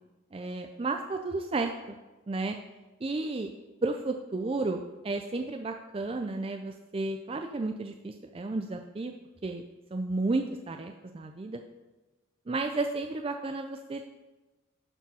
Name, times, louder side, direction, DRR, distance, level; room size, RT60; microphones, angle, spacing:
voice 1, 0.3-2.0 2.3-2.6 3.0-3.5 3.8-9.1 9.4-9.6 9.9-11.6 12.5-14.1, right 3 dB, 25° right, 5 dB, 0.4 m, -32 dB
12.0 x 4.9 x 5.5 m, 1.1 s
head